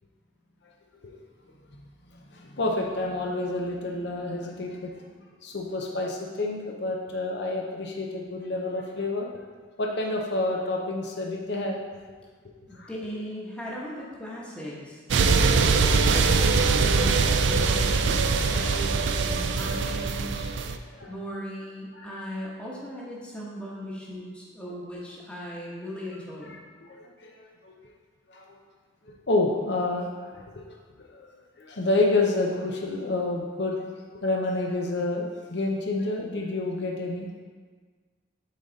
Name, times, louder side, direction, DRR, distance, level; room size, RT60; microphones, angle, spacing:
voice 1, 2.1-5.1 5.4-9.4 9.8-11.8 12.7-12.9 20.9-21.1 22.0-22.1 26.5-27.7 28.3-28.5 29.1-31.3 31.6-37.4, left 2 dB, 55° left, 0 dB, 0.6 m, -29 dB
voice 2, 12.7-15.4 16.0-18.1 18.5-18.9 19.2-20.5 21.1-26.5, equal, 5° left, -5 dB, 1.1 m, -38 dB
sound 1, 15.1-20.8, right 4 dB, 65° right, 0.4 m, -22 dB
8.3 x 3.9 x 4.0 m, 1.5 s
head